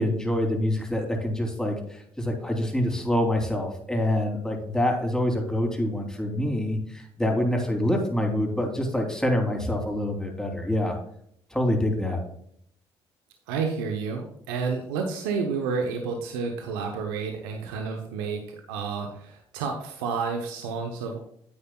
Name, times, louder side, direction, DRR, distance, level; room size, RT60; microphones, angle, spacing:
voice 1, 0.0-11.0 11.5-12.2, left 1 dB, 5° left, 1 dB, 3.1 m, -26 dB
voice 2, 13.5-21.2, right 5 dB, 90° right, 3 dB, 0.9 m, -30 dB
9.9 x 8.6 x 2.3 m, 0.69 s
hypercardioid pair, 55°, 12 cm